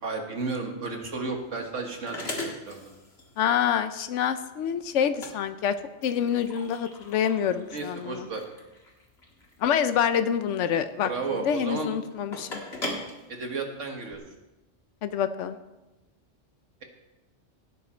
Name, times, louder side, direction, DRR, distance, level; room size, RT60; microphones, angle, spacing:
voice 1, 0.0-2.9 7.7-8.4 10.9-11.9 13.3-14.2, right 3 dB, 90° right, 3 dB, 2.0 m, -33 dB
sound 1, 0.8-14.1, left 2 dB, 60° left, 2.3 m, -41 dB
voice 2, 3.4-5.7 6.0-8.3 9.6-12.6 15.0-15.6, left 8 dB, 80° left, 11 dB, 1.0 m, -26 dB
17.0 x 9.4 x 4.4 m, 1.0 s
omnidirectional pair, 1.2 m